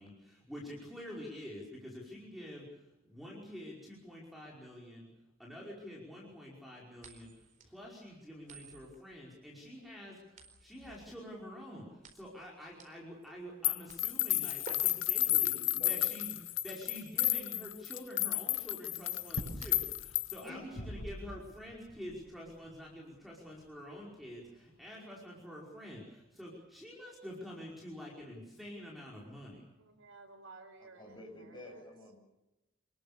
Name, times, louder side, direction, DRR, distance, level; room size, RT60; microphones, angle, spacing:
voice 1, 0.0-5.1 5.4-7.3 7.6-15.5 15.8-29.6, equal, ahead, -3 dB, 5.1 m, -47 dB
sound 1, 7.0-20.2, right 3 dB, 40° right, 4.4 m, -56 dB
sound 2, 13.6-20.5, left 16 dB, 65° left, 0.8 m, -32 dB
voice 2, 15.2-16.0 20.4-20.9 31.0-32.2, left 1 dB, 20° left, 0 dB, 7.2 m, -50 dB
sound 3, 19.2-24.8, equal, 85° left, 5.6 m, -46 dB
voice 3, 29.8-31.8, right 3 dB, 85° right, 5 dB, 5.2 m, -55 dB
27.5 x 21.0 x 6.9 m, 0.97 s
head